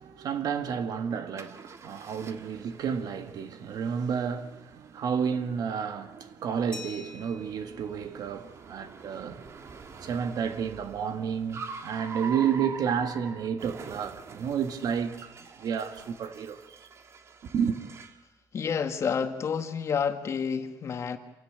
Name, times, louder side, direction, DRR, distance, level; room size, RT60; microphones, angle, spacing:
voice 1, 0.0-9.4 10.0-15.3 15.6-16.8 17.5-17.8, right 7 dB, 65° right, 1.7 m, -31 dB
Car, 1.4-18.3, right 5 dB, 40° right, 1.7 m, -45 dB
Glass, 6.7-9.2, left 4 dB, 10° left, 3.0 m, -48 dB
voice 2, 18.5-21.2, left 6 dB, 40° left, 1.7 m, -29 dB
27.0 x 17.0 x 8.9 m
cardioid pair, 175°, 7 cm